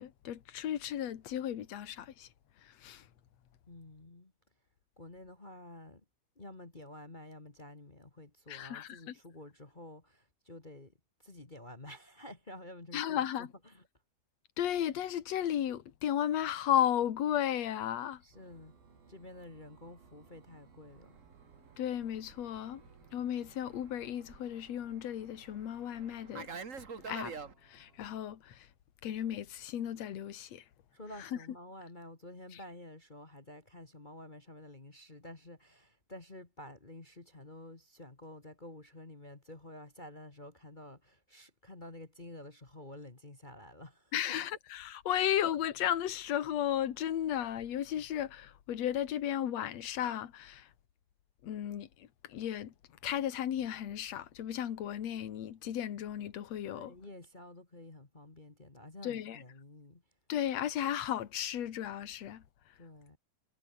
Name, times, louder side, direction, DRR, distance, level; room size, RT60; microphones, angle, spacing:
voice 1, 0.0-2.3 2.6-3.1 8.5-9.1 12.9-13.5 14.6-18.2 21.8-22.8 23.1-26.5 27.1-27.3 27.6-28.7 29.0-30.6 31.2-31.3 44.1-50.7 51.4-52.7 53.0-56.9 59.0-59.4 60.3-62.4, left 10 dB, 55° left, 2.6 m, -34 dB
voice 2, 3.7-4.3 5.0-6.0 6.3-10.9 11.2-13.8 18.2-18.7 19.1-21.2 30.9-44.2 56.7-60.0 62.8-63.2, left 1 dB, 25° left, 1.0 m, -50 dB
sound 1, 18.3-28.1, right 5 dB, 85° right, 7.6 m, -62 dB
Fixed-wing aircraft airplane, 21.0-27.5, right 5 dB, 35° right, 1.2 m, -48 dB
omnidirectional pair, 4.1 m